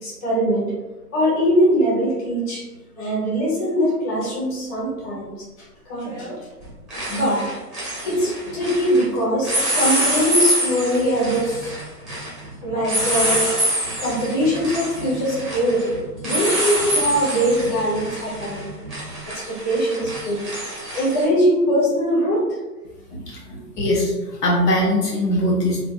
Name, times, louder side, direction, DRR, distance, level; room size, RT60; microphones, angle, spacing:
voice 1, 0.0-0.7 1.1-2.6 3.0-5.3 5.9-6.5 7.1-7.5 8.0-11.7 12.6-13.6 14.0-15.9 16.2-18.7 19.5-20.4 20.9-22.4 23.1-23.6, equal, 25° left, -6 dB, 1.3 m, -22 dB
sound 1, 4.2-4.3 6.0-6.3 6.6-9.0 9.4-21.2, equal, ahead, 0.5 m, -26 dB
voice 2, 23.8-25.9, left 1 dB, 75° left, -3 dB, 0.8 m, -21 dB
3.3 x 2.5 x 2.2 m, 1.1 s
figure-of-eight pair, 120°, 48 cm